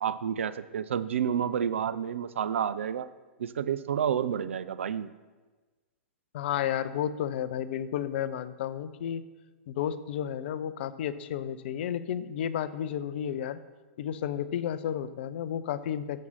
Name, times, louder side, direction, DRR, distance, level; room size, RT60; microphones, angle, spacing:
voice 1, 0.0-3.1 3.4-5.1, right 8 dB, 75° right, 14 dB, 0.4 m, -30 dB
voice 2, 6.3-9.2 9.7-13.6 14.0-16.3, left 9 dB, 55° left, 14 dB, 0.4 m, -32 dB
7.3 x 6.0 x 5.5 m, 1.3 s
hypercardioid pair, 110°, 7 cm